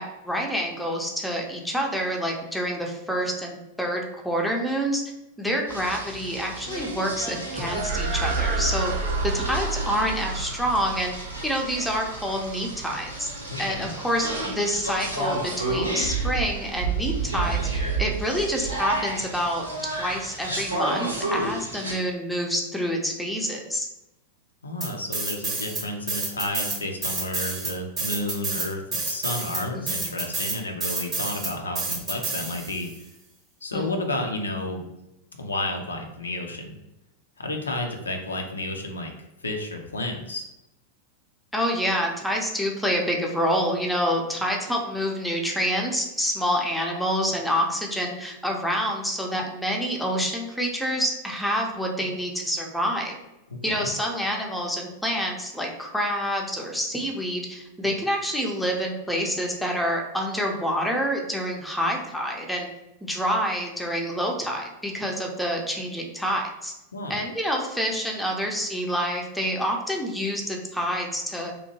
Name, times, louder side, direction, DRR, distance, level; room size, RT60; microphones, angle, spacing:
voice 1, 0.0-5.0 5.4-8.9 9.2-11.1 11.4-13.3 13.6-23.9 29.7-29.8 33.7-33.9 41.5-53.1 53.6-62.7 63.0-66.7 67.1-71.5, equal, ahead, 0 dB, 0.5 m, -27 dB
sound 1, 5.7-21.9, right 2 dB, 85° right, 0.7 m, -31 dB
sound 2, 7.5-16.2, right 3 dB, 50° right, 0.4 m, -32 dB
voice 2, 13.5-13.9 24.6-32.9 33.6-34.8 35.4-36.7 37.4-39.1 39.4-40.5 53.7-53.9 66.9-67.2, left 2 dB, 75° left, 3 dB, 0.4 m, -31 dB
sound 3, 24.8-25.8 26.1-32.9, right 3 dB, 25° right, 0.8 m, -29 dB
2.8 x 2.1 x 2.8 m, 0.90 s
figure-of-eight pair, 90°, 0 cm